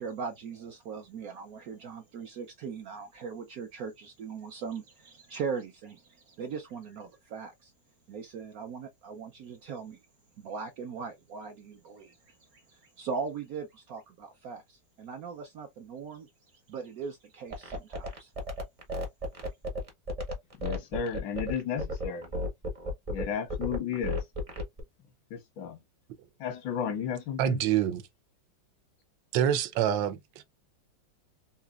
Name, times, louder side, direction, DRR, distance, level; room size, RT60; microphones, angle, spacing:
voice 1, 0.0-7.7 8.1-10.0 10.4-16.3 16.7-18.3, right 5 dB, 70° right, 0.9 m, -39 dB
sound 1, 17.5-24.8, equal, 30° right, 0.6 m, -33 dB
voice 2, 20.6-22.3 23.1-24.2 25.3-25.8 26.4-27.6, left 7 dB, 90° left, 1.6 m, -33 dB
voice 3, 27.4-28.0 29.3-30.4, right 10 dB, 85° right, 1.4 m, -26 dB
4.0 x 2.8 x 2.3 m
omnidirectional pair, 2.0 m